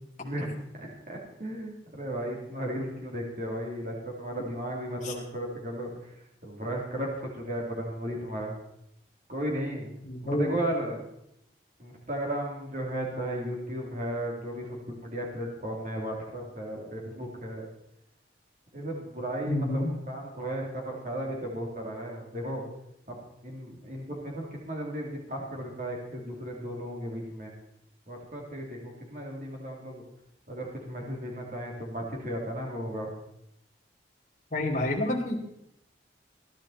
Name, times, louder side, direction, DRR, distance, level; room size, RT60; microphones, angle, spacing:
voice 1, 0.2-6.1 6.4-8.5 9.3-9.9 10.2-11.0 11.8-17.7 18.7-22.6 23.1-27.5 28.1-30.0 30.5-33.1, right 1 dB, 45° right, -1 dB, 3.4 m, -35 dB
voice 2, 10.0-10.5 19.5-19.9 34.5-35.4, left 1 dB, 40° left, -2 dB, 2.6 m, -28 dB
16.5 x 11.5 x 4.4 m, 0.78 s
head